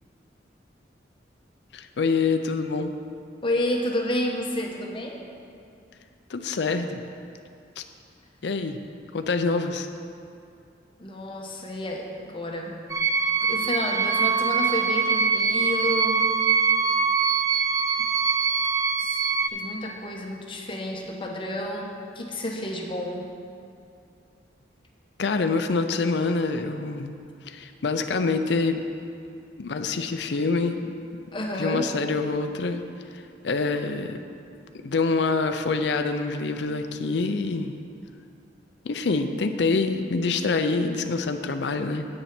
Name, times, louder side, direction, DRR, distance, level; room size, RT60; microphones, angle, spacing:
voice 1, 1.7-2.9 6.3-7.0 7.8-7.9 8.4-8.8 9.1-9.9 25.2-27.2 27.5-28.8 29.6-30.9 31.6-32.8 33.1-34.2 34.8-37.8 38.8-42.1, left 4 dB, 65° left, 7 dB, 0.5 m, -26 dB
voice 2, 3.4-5.2 11.0-12.8 13.4-16.3 18.0-18.1 19.0-19.2 19.5-23.3 31.3-31.9, left 1 dB, 30° left, 0 dB, 1.0 m, -30 dB
sound 1, 12.9-19.5, right 5 dB, 15° right, 0.4 m, -23 dB
8.7 x 6.9 x 5.9 m, 2.5 s
head